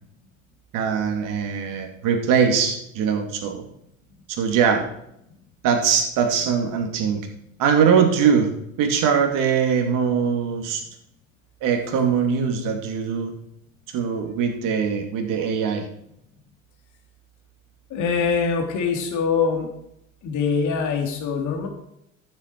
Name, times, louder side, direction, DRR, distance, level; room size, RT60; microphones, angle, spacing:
voice 1, 0.7-3.6 4.3-4.8 5.6-7.2 7.6-8.5 8.8-10.8 11.6-13.3 13.9-15.9, right 7 dB, 55° right, 5 dB, 2.5 m, -21 dB
voice 2, 17.9-19.7 20.2-21.7, left 5 dB, 50° left, 2 dB, 3.2 m, -23 dB
13.0 x 7.8 x 4.7 m, 0.77 s
hypercardioid pair, 75°, 39 cm